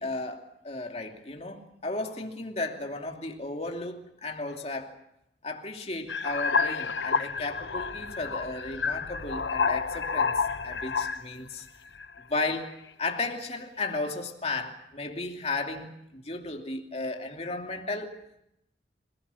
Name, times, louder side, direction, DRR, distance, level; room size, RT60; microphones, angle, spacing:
voice 1, 0.0-4.9 5.4-11.7 12.3-18.2, left 2 dB, 35° left, 2.8 m, -34 dB
sound 1, 6.1-11.3 11.9-12.4, left 5 dB, 80° left, 1.1 m, -29 dB
28.0 x 18.5 x 8.4 m
head